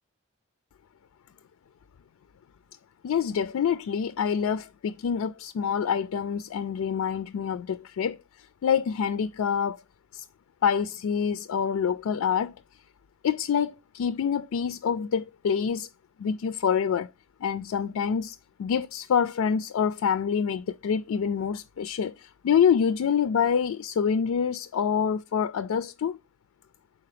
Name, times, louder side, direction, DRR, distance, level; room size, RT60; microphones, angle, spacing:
voice 1, 3.0-8.2 8.6-9.8 10.1-10.2 10.6-12.6 13.2-15.9 16.2-17.1 17.4-26.2, left 7 dB, 80° left, 0.3 m, -26 dB
5.7 x 4.3 x 4.9 m
head